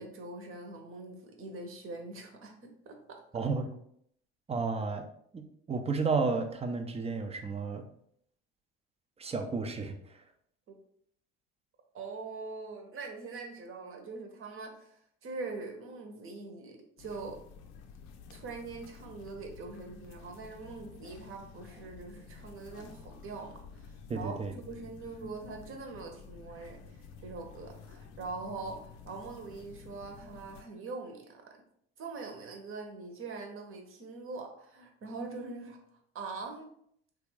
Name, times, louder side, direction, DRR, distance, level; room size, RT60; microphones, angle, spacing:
voice 1, 0.0-3.2 10.7-10.8 11.9-17.4 18.3-31.6 32.0-35.8 36.1-36.7, right 3 dB, 40° right, 3 dB, 0.9 m, -43 dB
voice 2, 3.3-3.7 4.5-5.1 5.3-7.9 9.2-9.9 24.1-24.5, right 4 dB, 20° right, 5 dB, 0.5 m, -32 dB
sound 1, 17.0-30.6, left 5 dB, 55° left, 0.6 m, -51 dB
3.3 x 2.5 x 3.2 m, 0.69 s
hypercardioid pair, 65°, 32 cm